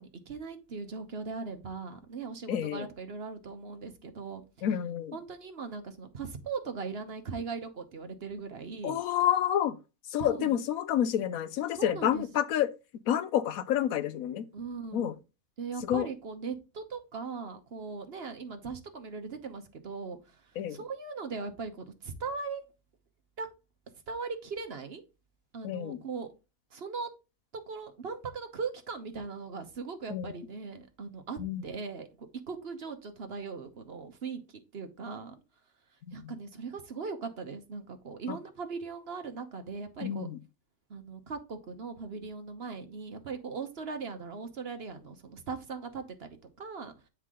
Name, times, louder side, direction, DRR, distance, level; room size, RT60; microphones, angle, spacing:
voice 1, 0.0-4.7 5.1-9.0 10.2-10.5 11.7-12.2 14.5-15.2 15.6-20.4 20.7-22.6 23.4-23.5 24.1-25.0 25.5-26.3 26.7-27.1 27.7-35.3 36.1-40.3 40.9-46.9, right 4 dB, 45° right, 1.2 m, -39 dB
voice 2, 2.5-2.9 4.6-5.1 8.8-9.8 10.1-12.7 13.1-14.5 14.9-15.1 15.9-16.1 20.6-20.8 25.6-26.0 30.1-30.3 31.4-31.6 36.2-36.3 38.3-38.4 40.0-40.4, left 10 dB, 75° left, 1.0 m, -29 dB
8.0 x 4.6 x 3.7 m
omnidirectional pair, 1.6 m